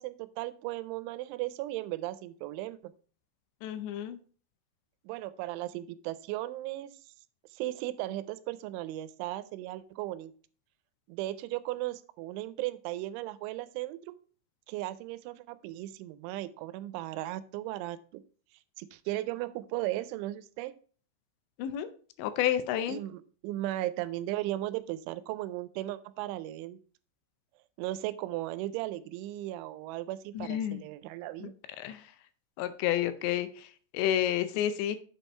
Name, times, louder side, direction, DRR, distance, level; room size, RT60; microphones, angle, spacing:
voice 1, 0.0-2.9 5.0-6.9 7.5-10.3 11.1-14.1 14.7-18.2 18.8-20.7 22.9-26.8 27.8-31.5, right 15 dB, 90° right, 15 dB, 3.0 m, -36 dB
voice 2, 3.6-4.2 21.6-21.9 22.2-23.0 30.4-30.8 31.4-31.5 31.8-32.0 32.6-33.7 33.9-35.0, left 11 dB, 80° left, 11 dB, 2.8 m, -30 dB
7.6 x 5.4 x 4.3 m, 0.42 s
omnidirectional pair, 5.4 m